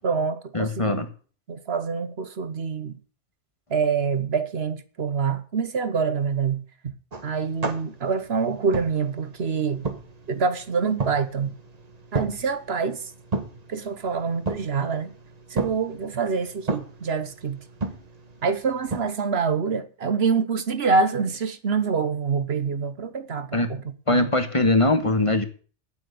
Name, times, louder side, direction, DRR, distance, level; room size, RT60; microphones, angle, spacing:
voice 1, 0.0-1.0 1.5-3.0 3.7-6.9 7.2-9.9 10.3-11.5 12.1-13.1 13.7-15.1 15.5-17.6 18.4-23.8 24.1-24.3, right 5 dB, 65° right, 1.3 m, -26 dB
voice 2, 0.5-1.1 23.5-23.7 24.1-25.4, left 2 dB, 30° left, 1.4 m, -21 dB
sound 1, 7.1-19.0, right 3 dB, 35° right, 1.3 m, -34 dB
9.0 x 8.6 x 9.3 m
omnidirectional pair, 1.2 m